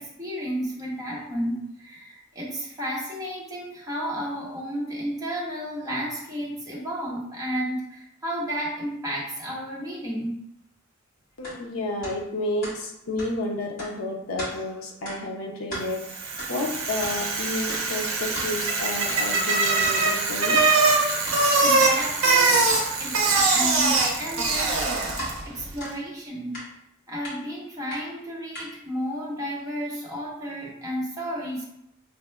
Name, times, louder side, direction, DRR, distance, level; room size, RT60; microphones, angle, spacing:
voice 1, 0.0-10.3 21.6-22.7 23.0-24.9 25.2-26.6 27.1-31.6, equal, 15° right, -5 dB, 0.9 m, -32 dB
voice 2, 11.4-20.6, left 1 dB, 70° left, 0 dB, 0.5 m, -31 dB
sound 1, 11.4-11.6 12.0-12.2 12.6-12.8 13.2-13.3 13.8-13.9 14.4-14.5 15.1-15.2 15.6-15.9 16.4-16.5 17.0-17.2 17.7-17.8 18.3-18.5 19.1-19.2 19.8-20.0 20.5-20.7 21.3-21.4 22.0-22.1 22.7-22.8 23.4-24.1 24.5-25.3 25.8-25.9 26.5-26.7 27.2-27.4 27.9-28.0 28.5-28.7, equal, 45° left, 1.3 m, -36 dB
Bicycle, 16.0-25.4, right 3 dB, 65° right, 0.6 m, -22 dB
5.4 x 2.0 x 2.2 m, 0.80 s
head